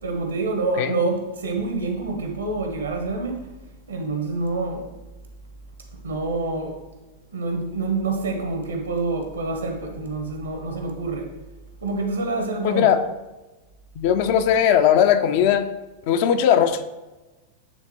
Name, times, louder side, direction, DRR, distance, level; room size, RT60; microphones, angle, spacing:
voice 1, 0.0-3.5 3.9-4.9 5.9-6.8 7.3-11.3 11.8-12.9, right 3 dB, 75° right, 1.0 m, -27 dB
voice 2, 12.6-13.0 14.0-15.7 16.1-16.8, left 9 dB, 50° left, 0.4 m, -18 dB
8.8 x 3.6 x 3.0 m
figure-of-eight pair, 90°, 0 cm